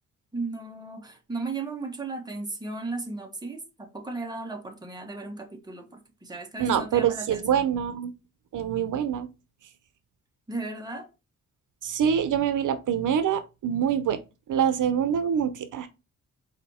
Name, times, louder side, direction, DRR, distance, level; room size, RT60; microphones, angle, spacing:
voice 1, 0.3-7.7 10.5-11.1, right 3 dB, 10° right, 1.2 m, -35 dB
voice 2, 6.6-8.1 8.5-9.3 11.8-14.2 14.5-15.9, right 8 dB, 75° right, 0.7 m, -25 dB
5.1 x 4.3 x 4.2 m
wide cardioid pair, 150°, 31 cm